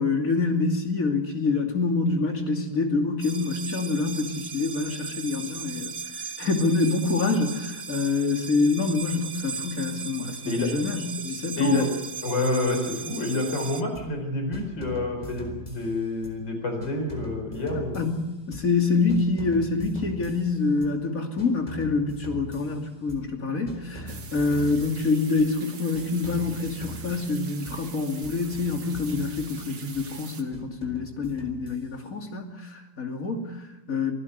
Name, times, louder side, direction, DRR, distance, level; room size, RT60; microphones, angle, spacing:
voice 1, 0.0-11.9 17.7-18.2 18.5-34.1, left 3 dB, 50° left, 3 dB, 3.1 m, -26 dB
sound 1, 3.2-13.8, right 6 dB, 40° right, 1.2 m, -37 dB
voice 2, 11.6-11.9 12.2-18.1, left 1 dB, 90° left, 4 dB, 5.3 m, -28 dB
sound 2, 13.9-14.2 14.5-16.5 16.8-18.8 19.1-21.0 21.4-23.4 23.7-25.6 25.9-27.9 28.2-30.1 30.5-32.2, equal, 20° left, 3.9 m, -42 dB
sound 3, 24.1-30.4, right 5 dB, 80° right, 2.6 m, -44 dB
25.5 x 16.5 x 8.1 m, 1.0 s
omnidirectional pair, 1.9 m